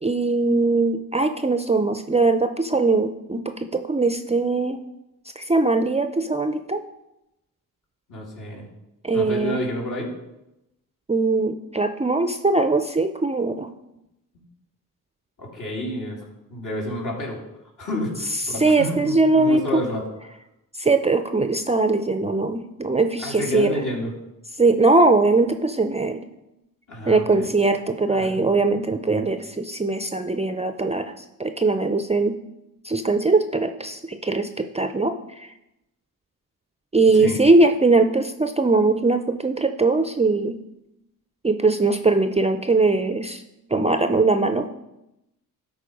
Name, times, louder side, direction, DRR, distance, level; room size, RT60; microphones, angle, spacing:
voice 1, 0.0-4.8 5.4-6.8 9.0-9.6 11.1-13.7 18.4-19.8 20.8-23.7 24.6-26.2 27.1-32.3 32.8-35.5 36.9-40.6 41.4-43.4 43.7-44.7, right 3 dB, 20° right, 7 dB, 0.5 m, -21 dB
voice 2, 8.1-8.7 9.1-10.1 15.4-16.2 16.5-17.4 17.8-20.0 23.2-24.1 26.9-27.5 28.1-28.5 37.1-37.4, left 1 dB, 60° left, -3 dB, 2.9 m, -29 dB
12.5 x 4.2 x 5.1 m, 0.90 s
cardioid pair, 80°, 35 cm